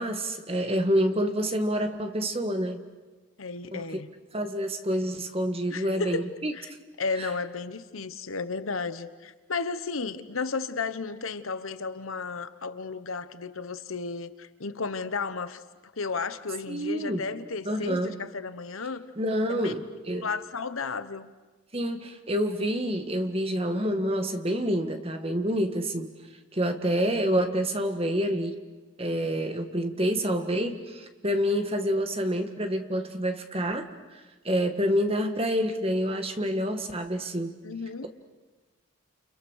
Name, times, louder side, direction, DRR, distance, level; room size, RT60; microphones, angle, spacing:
voice 1, 0.0-2.8 3.7-3.8 4.3-6.5 7.2-7.3 16.7-17.3 17.7-18.2 19.2-20.3 21.7-26.1 26.5-28.6 29.0-33.8 34.1-37.6, equal, 30° right, 1.8 m, -28 dB
voice 2, 3.4-4.1 5.7-6.7 7.0-15.6 16.0-19.0 19.5-19.7 20.2-21.3 37.6-38.1, left 4 dB, 90° left, 1.2 m, -33 dB
29.5 x 29.5 x 6.6 m
head